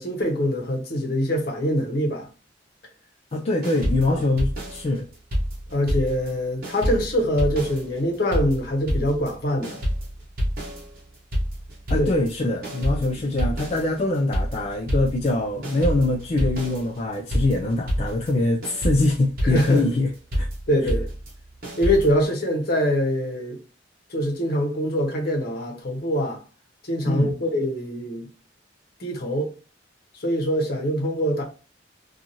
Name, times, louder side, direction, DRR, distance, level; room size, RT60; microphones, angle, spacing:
voice 1, 0.0-2.3 4.1-4.2 5.7-9.8 12.0-12.1 19.4-19.8 20.7-21.1 21.8-23.6 24.1-26.4 26.8-28.3 29.0-29.5 30.2-31.4, equal, 55° left, 0.8 m, -24 dB
voice 2, 3.3-5.1 11.9-20.5 27.1-27.4, left 2 dB, 35° left, 0.3 m, -23 dB
sound 1, 3.6-6.4 6.6-22.2, equal, 50° right, 1.0 m, -28 dB
2.6 x 2.4 x 2.9 m
head